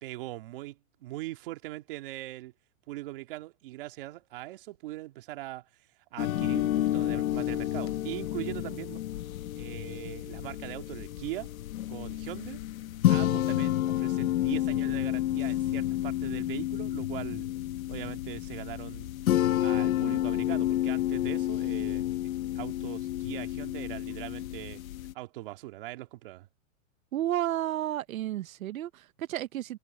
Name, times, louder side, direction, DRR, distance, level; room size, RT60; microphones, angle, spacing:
voice 1, 0.0-2.5 2.9-5.7 6.1-9.0 9.5-11.5 11.9-12.6 13.1-17.5 17.9-19.1 19.6-22.1 22.5-24.8 25.1-26.5, right 17 dB, 40° right, 2.3 m, -40 dB
sound 1, 6.2-25.1, left 13 dB, 85° left, 1.0 m, -30 dB
voice 2, 27.1-29.8, right 13 dB, 80° right, 0.9 m, -32 dB
supercardioid pair, 175°, 41 cm